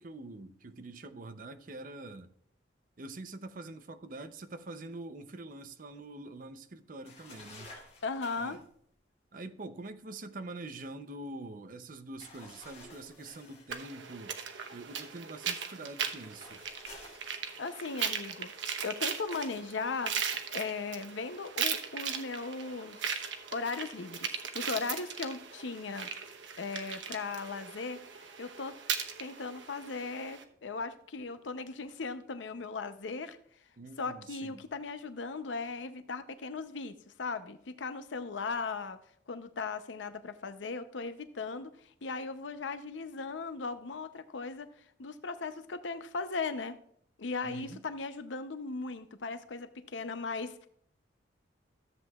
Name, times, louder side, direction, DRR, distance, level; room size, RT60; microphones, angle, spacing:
voice 1, 0.0-2.3 3.0-7.7 8.4-8.6 9.3-14.3 14.7-16.6 33.8-34.7 47.4-47.8, right 2 dB, 45° right, 0.6 m, -45 dB
sound 1, 7.1-8.7 12.2-13.8 16.1-17.8 19.3-19.7, left 2 dB, 35° left, 2.7 m, -52 dB
voice 2, 8.0-8.6 17.6-18.5 18.8-20.2 20.5-23.2 23.5-26.1 26.6-28.0 28.4-28.8 29.2-33.4 34.0-39.0 39.3-41.8 42.0-44.7 45.0-46.8 47.2-50.7, left 4 dB, 85° left, 0.7 m, -37 dB
sound 2, 13.7-30.4, right 7 dB, 90° right, 1.0 m, -38 dB
14.0 x 7.7 x 2.3 m
head